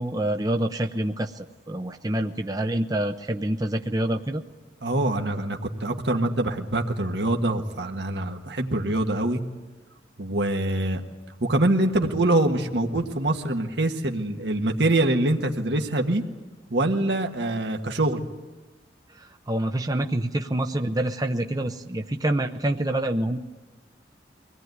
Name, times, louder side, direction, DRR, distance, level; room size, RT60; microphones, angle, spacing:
voice 1, 0.0-4.4 19.1-23.4, right 1 dB, 20° right, 5 dB, 0.7 m, -27 dB
voice 2, 4.8-9.4 10.2-11.0 11.4-16.2 16.7-18.2, right 1 dB, 75° right, 3 dB, 1.5 m, -24 dB
24.0 x 18.0 x 9.4 m, 1.2 s
head